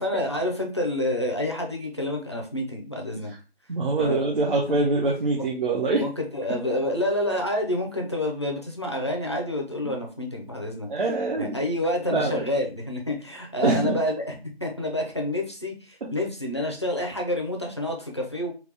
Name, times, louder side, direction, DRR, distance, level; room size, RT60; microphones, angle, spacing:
voice 1, 0.0-3.3 4.0-4.2 5.3-5.4 6.0-10.9 11.4-18.5, left 1 dB, 25° left, 1 dB, 0.5 m, -28 dB
voice 2, 3.7-6.1 6.5-6.6 9.8-9.9 10.9-11.6 12.1-12.5 13.6-14.0 16.0-16.1, right 3 dB, 50° right, -2 dB, 0.8 m, -24 dB
3.6 x 2.3 x 3.3 m, 0.34 s
figure-of-eight pair, 155°, 32 cm